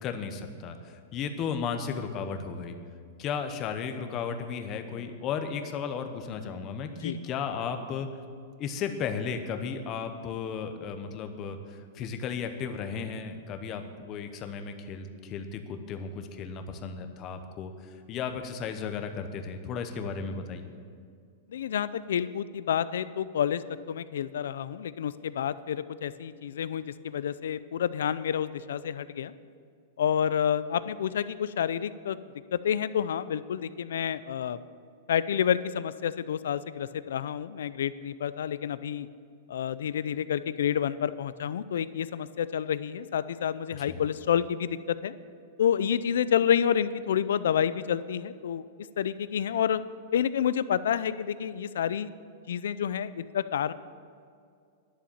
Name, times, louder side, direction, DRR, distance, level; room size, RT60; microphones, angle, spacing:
voice 1, 0.0-2.7 3.2-8.1 8.6-20.7 43.7-44.0, left 6 dB, 25° left, 7 dB, 0.9 m, -35 dB
voice 2, 21.5-23.6 23.9-29.3 30.0-32.2 32.5-34.6 35.1-39.1 39.5-45.1 45.6-48.6 49.0-49.8 50.1-52.1 52.5-53.7, left 9 dB, 85° left, 15 dB, 0.5 m, -29 dB
11.0 x 7.2 x 8.9 m, 2.3 s
supercardioid pair, 165°, 0 cm